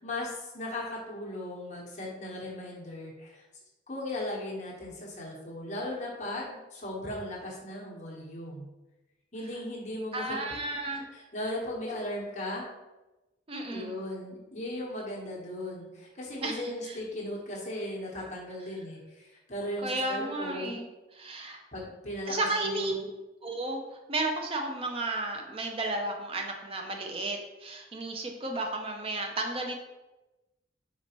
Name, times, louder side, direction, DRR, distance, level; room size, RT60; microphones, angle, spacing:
voice 1, 0.0-3.4 3.9-8.7 9.3-10.4 10.9-12.6 13.7-20.8 21.7-23.0, left 1 dB, 40° left, -3 dB, 1.1 m, -37 dB
voice 2, 10.1-11.1 13.5-14.0 16.4-17.0 19.8-20.9 21.2-21.6 22.3-22.9 23.4-29.7, right 2 dB, 30° right, 3 dB, 0.4 m, -33 dB
4.4 x 4.0 x 3.0 m, 1.0 s
head